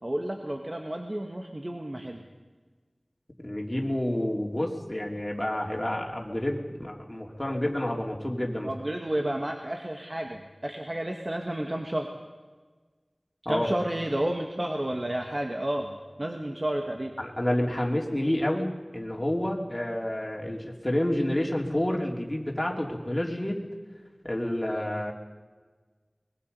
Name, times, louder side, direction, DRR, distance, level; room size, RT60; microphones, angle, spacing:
voice 1, 0.0-2.2 8.6-12.1 13.5-17.1, right 1 dB, 35° right, 2 dB, 1.8 m, -31 dB
voice 2, 3.4-8.7 13.5-13.7 17.2-23.6 24.2-25.1, left 1 dB, 25° left, 0 dB, 3.5 m, -29 dB
24.0 x 21.5 x 5.6 m, 1.4 s
wide cardioid pair, 50°, 0 cm